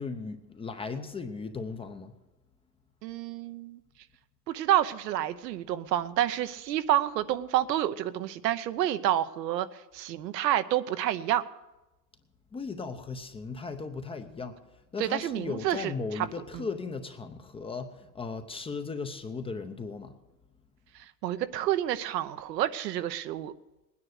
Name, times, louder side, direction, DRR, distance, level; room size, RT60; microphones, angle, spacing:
voice 1, 0.0-2.1 12.5-14.6 14.9-20.1, left 4 dB, 10° left, 7 dB, 0.7 m, -37 dB
voice 2, 3.0-3.8 4.5-9.7 9.9-11.4 15.0-16.3 16.5-16.6 21.2-23.5, right 12 dB, 75° right, 11 dB, 1.0 m, -29 dB
19.5 x 9.7 x 6.5 m, 1.0 s
hypercardioid pair, 120°, 50 cm